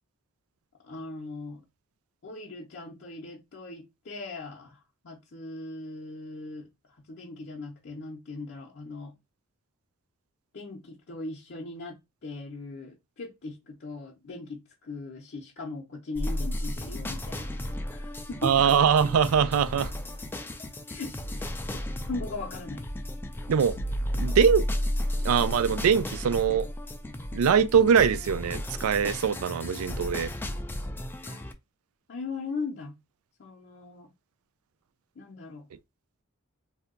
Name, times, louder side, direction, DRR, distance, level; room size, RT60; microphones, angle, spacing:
voice 1, 0.8-1.6 2.2-6.7 7.1-9.1 10.5-12.0 12.2-17.6 17.9-18.6 20.9-21.8 22.1-22.9 31.2-31.5 32.1-32.9 33.4-34.1 35.2-35.7, left 3 dB, 55° left, 0.6 m, -39 dB
sound 1, 16.2-31.5, left 1 dB, 10° left, 0.3 m, -33 dB
voice 2, 18.4-19.9 23.5-23.8 24.1-24.7 25.2-26.7 27.3-30.3, right 7 dB, 80° right, 0.3 m, -22 dB
2.7 x 2.2 x 3.6 m
head